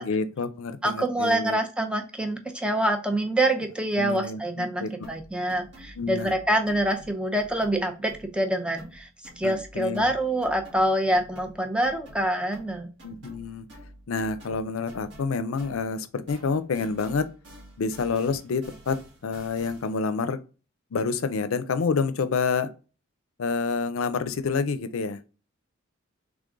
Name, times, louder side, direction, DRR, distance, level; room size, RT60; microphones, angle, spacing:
voice 1, 0.0-1.6 4.0-4.9 6.0-6.3 9.4-10.1 13.0-13.7 14.1-17.3 17.8-20.4 20.9-22.7 23.4-25.2, left 4 dB, 80° left, 0.5 m, -28 dB
voice 2, 0.8-9.1 9.4-12.9, right 1 dB, 5° right, 0.5 m, -26 dB
sound 1, 5.0-8.5 8.8-16.0 16.3-20.1, equal, 60° right, 1.7 m, -49 dB
3.7 x 3.5 x 3.8 m
head